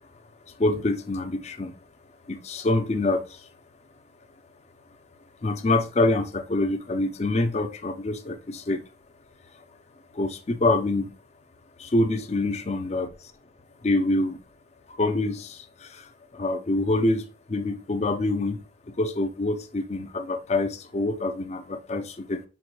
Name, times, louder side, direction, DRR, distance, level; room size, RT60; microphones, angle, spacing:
voice 1, 0.6-1.8 2.3-3.5 5.4-8.8 10.1-11.1 11.8-13.1 13.8-14.4 14.9-22.4, left 2 dB, 35° left, 0.5 m, -26 dB
5.8 x 2.2 x 3.0 m
head